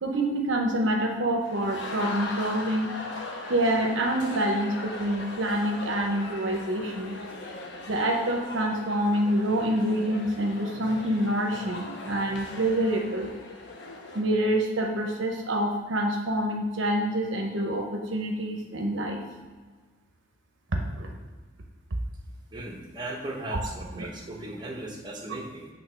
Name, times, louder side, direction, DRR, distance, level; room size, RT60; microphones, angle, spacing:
voice 1, 0.0-2.9 3.5-7.2 7.9-13.3 14.1-19.2 20.7-21.1 23.5-23.6 23.9-24.1, right 1 dB, 65° right, 2 dB, 0.8 m, -27 dB
sound 1, 1.4-14.2, left 2 dB, 60° left, 1.1 m, -39 dB
voice 2, 22.5-25.7, right 1 dB, 20° right, 0 dB, 1.2 m, -37 dB
8.1 x 3.6 x 5.7 m, 1.4 s
head